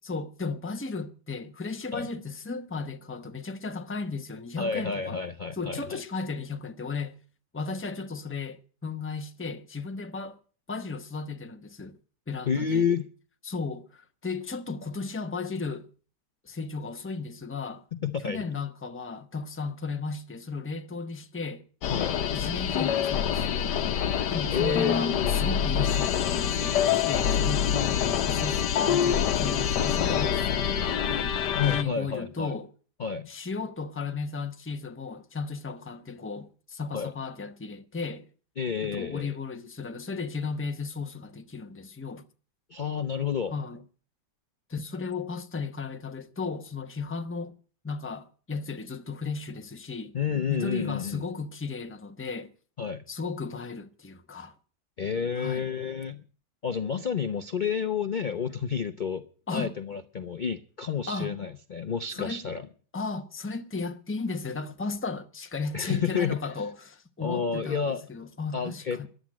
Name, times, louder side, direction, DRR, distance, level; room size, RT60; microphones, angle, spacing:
voice 1, 0.1-5.2 5.6-7.2 7.5-10.4 10.7-12.0 12.3-12.9 13.4-15.9 16.4-17.8 18.2-21.6 22.3-23.8 24.3-28.0 28.3-32.7 33.3-38.3 38.8-42.3 43.5-43.8 44.7-47.5 47.8-50.1 50.5-52.5 53.1-54.5 55.4-55.7 59.5-59.7 61.1-61.3 62.1-62.4 62.9-69.1, left 4 dB, 10° left, 0.7 m, -35 dB
voice 2, 4.6-6.0 12.5-13.1 17.9-18.5 21.9-22.2 24.5-25.3 31.5-32.5 33.0-33.3 36.9-37.1 38.6-39.3 42.7-43.5 50.1-51.2 52.8-53.0 55.0-56.2 56.6-59.2 59.5-62.7 65.7-66.4 67.2-68.0 68.5-69.1, left 6 dB, 50° left, 0.5 m, -30 dB
sound 1, 21.8-31.8, left 9 dB, 75° left, 1.5 m, -26 dB
14.5 x 11.0 x 7.6 m
omnidirectional pair, 1.9 m